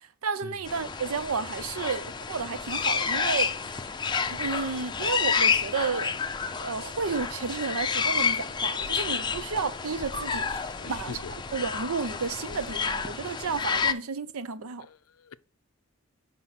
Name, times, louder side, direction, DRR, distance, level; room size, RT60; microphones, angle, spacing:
voice 1, 0.2-3.5 4.3-6.2 6.6-14.9, right 5 dB, 85° right, 0.6 m, -32 dB
sound 1, 0.7-13.9, left 6 dB, 20° left, 0.5 m, -30 dB
voice 2, 10.5-11.3 14.8-15.4, left 5 dB, 85° left, 0.5 m, -44 dB
5.6 x 5.3 x 6.1 m
head